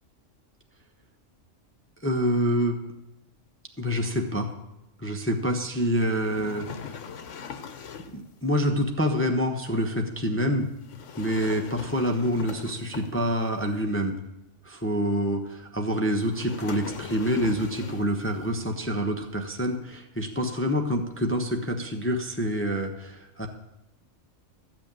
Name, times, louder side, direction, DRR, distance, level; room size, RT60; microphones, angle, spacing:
voice 1, 2.0-2.8 3.8-4.5 5.0-6.9 8.1-10.7 11.2-14.1 14.7-23.5, equal, 10° left, 3 dB, 0.8 m, -27 dB
sound 1, 6.0-8.3 10.8-13.5 16.3-18.2, left 7 dB, 70° left, 1.2 m, -40 dB
14.0 x 6.0 x 8.8 m, 0.92 s
omnidirectional pair, 1.3 m